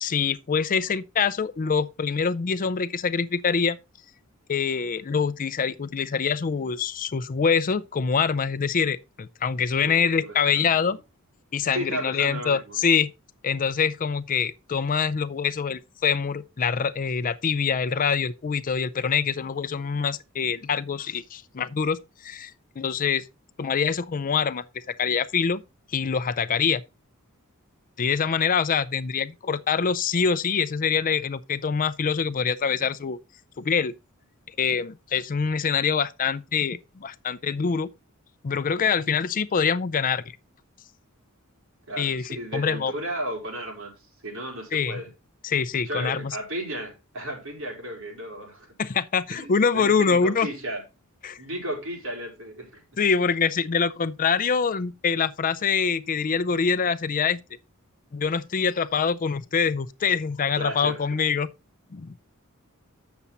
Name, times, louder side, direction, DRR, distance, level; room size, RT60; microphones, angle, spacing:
voice 1, 0.0-3.8 4.5-11.0 11.5-13.1 13.4-23.3 23.6-25.6 25.9-26.8 28.0-33.2 33.6-33.9 34.6-37.9 38.4-40.2 42.0-42.9 44.7-45.0 45.4-46.4 48.8-50.5 51.2-51.4 53.0-57.4 58.1-61.5 61.9-62.2, left 6 dB, 40° left, 0.4 m, -25 dB
voice 2, 9.8-10.9 11.7-12.8 41.9-45.1 45.8-48.7 49.3-50.8 51.4-52.8 60.5-61.1, right 1 dB, 65° right, 4.2 m, -34 dB
8.6 x 7.0 x 4.0 m
head